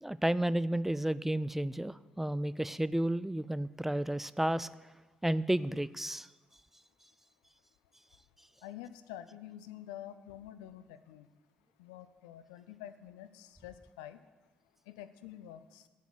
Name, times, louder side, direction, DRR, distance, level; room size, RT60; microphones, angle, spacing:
voice 1, 0.0-4.7 5.2-6.3, right 1 dB, 5° right, 17 dB, 0.3 m, -32 dB
voice 2, 8.6-11.2 11.8-14.2 14.9-15.8, left 11 dB, 70° left, 12 dB, 0.5 m, -48 dB
8.2 x 8.2 x 7.9 m, 1.2 s
figure-of-eight pair, 45°, 4 cm